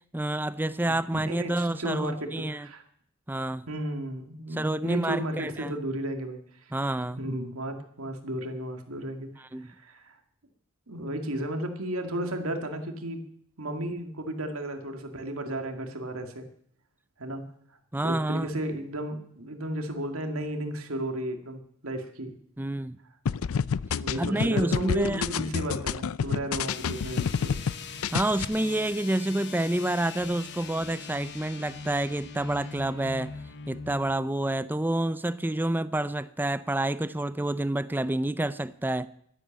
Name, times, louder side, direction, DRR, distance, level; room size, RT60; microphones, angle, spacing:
voice 1, 0.1-2.7 3.3-3.7 4.6-5.7 6.7-7.2 9.5-9.7 17.9-18.5 22.6-23.0 24.2-25.2 28.1-33.4 33.7-39.1, right 1 dB, 10° right, 0.5 m, -28 dB
voice 2, 1.3-2.8 3.7-6.8 7.2-10.2 10.9-13.2 13.6-16.5 17.2-17.4 18.0-22.3 24.0-27.5, right 1 dB, 85° right, 2.2 m, -34 dB
sound 1, 23.3-27.7 28.0-28.4, left 6 dB, 85° left, 0.5 m, -28 dB
sound 2, 26.6-34.2, left 5 dB, 55° left, 1.3 m, -41 dB
12.0 x 10.5 x 7.4 m
head